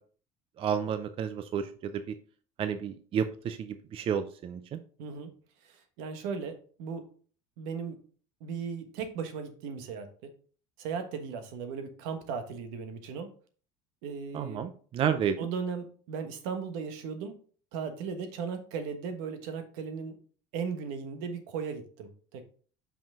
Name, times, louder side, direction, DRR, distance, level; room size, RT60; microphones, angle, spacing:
voice 1, 0.6-2.1 2.6-4.8 14.3-15.4, right 8 dB, 40° right, 10 dB, 0.5 m, -31 dB
voice 2, 5.0-5.3 5.6-7.0 7.6-8.0 8.4-10.3 10.8-13.3 14.0-14.7 15.4-17.3 17.7-20.2 20.5-22.5, right 6 dB, 80° right, 7 dB, 1.3 m, -37 dB
5.7 x 5.1 x 3.6 m, 0.43 s
supercardioid pair, 115°, 14 cm